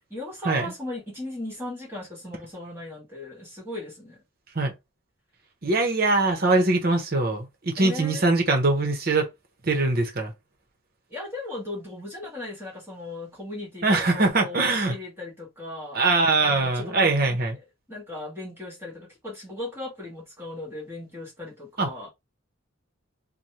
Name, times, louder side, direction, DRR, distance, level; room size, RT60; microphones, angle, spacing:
voice 1, 0.1-4.2 7.8-8.3 11.1-16.0 16.4-17.4 17.9-22.1, left 2 dB, 10° right, 1.6 m, -37 dB
voice 2, 5.6-9.3 9.6-10.3 13.8-14.9 15.9-17.5 21.8-21.9, right 3 dB, 45° right, 1.0 m, -22 dB
3.3 x 2.3 x 4.2 m
head